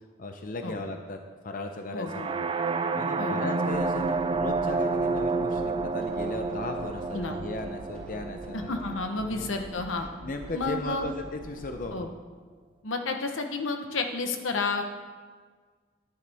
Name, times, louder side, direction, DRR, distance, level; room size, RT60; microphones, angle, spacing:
voice 1, 0.2-1.2 1.4-2.5 2.9-8.8 9.2-9.5 10.2-12.1, left 2 dB, 45° left, 5 dB, 0.7 m, -36 dB
voice 2, 1.9-2.3 3.2-3.4 7.1-7.4 8.5-10.1 10.5-11.1 11.9-12.1 12.8-14.8, left 3 dB, 80° left, 5 dB, 1.1 m, -31 dB
sound 1, 2.0-9.9, right 4 dB, 25° right, 0.3 m, -30 dB
sound 2, 3.7-11.8, equal, 5° left, 3.9 m, -46 dB
13.5 x 10.0 x 3.5 m, 1.6 s
head